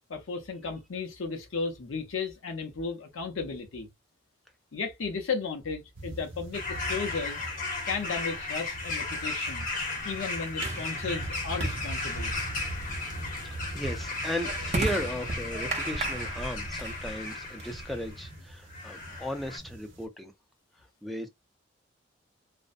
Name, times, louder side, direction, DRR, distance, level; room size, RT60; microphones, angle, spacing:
voice 1, 0.1-3.9 4.7-7.5 7.9-9.7 10.0-12.3, left 4 dB, 90° left, 0.6 m, -34 dB
sound 1, 5.9-20.1, right 1 dB, 75° right, 0.9 m, -42 dB
sound 2, 6.5-18.3 18.7-19.6, left 3 dB, 40° left, 0.7 m, -35 dB
sound 3, 8.4-18.3, right 2 dB, 35° right, 0.7 m, -38 dB
voice 2, 13.7-20.3 21.0-21.3, equal, ahead, 0.4 m, -35 dB
2.5 x 2.0 x 2.5 m
head